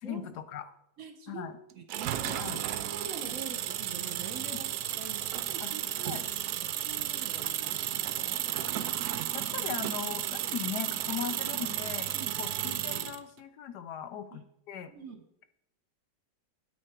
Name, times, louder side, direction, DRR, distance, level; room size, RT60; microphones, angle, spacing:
voice 1, 0.0-0.7 1.3-1.6 2.3-2.6 5.6-5.7 6.0-6.2 8.7-8.8 9.3-12.1 12.4-14.9, left 9 dB, 70° left, 11 dB, 1.1 m, -39 dB
voice 2, 1.0-1.5 1.7-6.2 6.6-8.4 12.1-12.4 14.3-14.4 14.9-15.2, right 5 dB, 55° right, 5 dB, 1.3 m, -45 dB
sound 1, 1.9-13.2, right 12 dB, 75° right, 0.9 m, -33 dB
9.5 x 8.5 x 4.4 m, 0.77 s
omnidirectional pair, 2.0 m